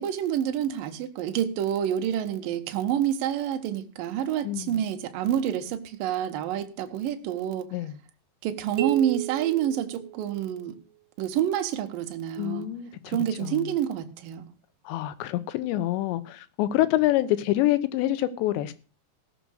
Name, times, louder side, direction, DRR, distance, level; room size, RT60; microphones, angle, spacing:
voice 1, 0.0-7.7 8.4-10.8 11.2-12.7 13.1-14.5, right 10 dB, 65° right, 2.4 m, -28 dB
voice 2, 4.4-4.8 7.7-8.0 12.4-13.7 14.9-18.7, left 14 dB, 80° left, 3.2 m, -26 dB
sound 1, 8.8-10.7, right 17 dB, 85° right, 1.9 m, -34 dB
17.0 x 6.5 x 6.5 m
omnidirectional pair, 5.3 m